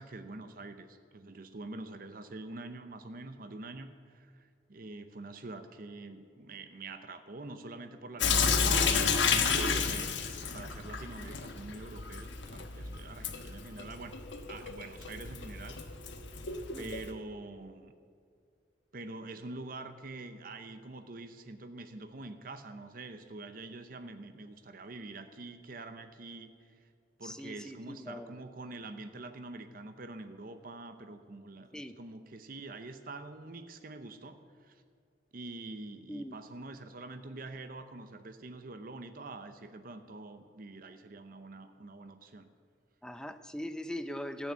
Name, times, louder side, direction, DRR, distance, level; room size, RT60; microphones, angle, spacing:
voice 1, 0.0-14.2 14.5-15.8 16.8-17.9 18.9-26.8 27.2-34.8 35.3-42.5, right 2 dB, 50° right, 9 dB, 0.7 m, -45 dB
Sink (filling or washing) / Drip, 8.2-17.1, left 5 dB, 85° left, 1.2 m, -31 dB
voice 2, 27.2-28.3 31.7-32.0 36.1-36.3 43.0-44.5, equal, 5° left, 10 dB, 0.5 m, -40 dB
14.0 x 9.1 x 8.1 m, 2.2 s
head